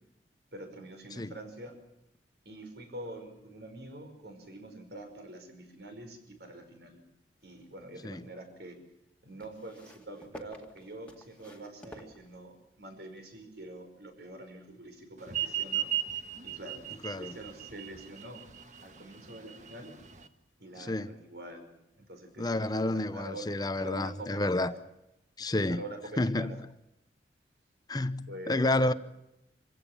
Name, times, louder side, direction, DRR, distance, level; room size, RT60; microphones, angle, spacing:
voice 1, 0.5-1.7 2.5-7.0 7.4-8.8 9.2-15.9 16.4-16.9 17.1-18.4 18.8-19.9 20.6-21.7 22.0-23.5 23.7-24.8 25.7-26.6 28.3-29.0, right 1 dB, 65° right, 5.3 m, -45 dB
sound 1, 7.4-8.3 9.4-12.8 13.7-13.8, left 1 dB, 5° left, 2.2 m, -53 dB
sound 2, 15.3-20.3, right 12 dB, 45° right, 1.6 m, -36 dB
voice 2, 17.0-17.4 20.8-21.1 22.4-24.7 25.4-25.8 26.2-26.6 27.9-28.9, left 2 dB, 20° left, 0.8 m, -30 dB
26.5 x 16.0 x 8.5 m
head